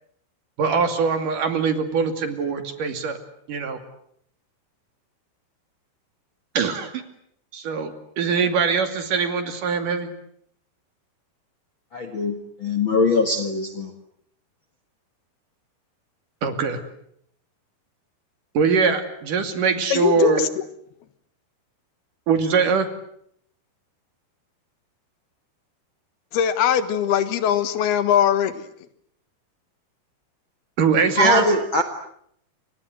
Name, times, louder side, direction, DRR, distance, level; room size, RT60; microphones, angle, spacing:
voice 1, 0.6-3.2 3.5-3.8 6.6-7.0 7.5-10.1 16.4-16.8 18.5-20.5 22.3-22.9 30.8-31.5, right 5 dB, 55° right, 3.9 m, -22 dB
voice 2, 11.9-13.9 31.2-31.8, left 2 dB, 45° left, 1.8 m, -22 dB
voice 3, 19.9-20.5 26.3-28.7, left 9 dB, 75° left, 3.4 m, -21 dB
29.5 x 25.0 x 7.8 m
omnidirectional pair, 4.6 m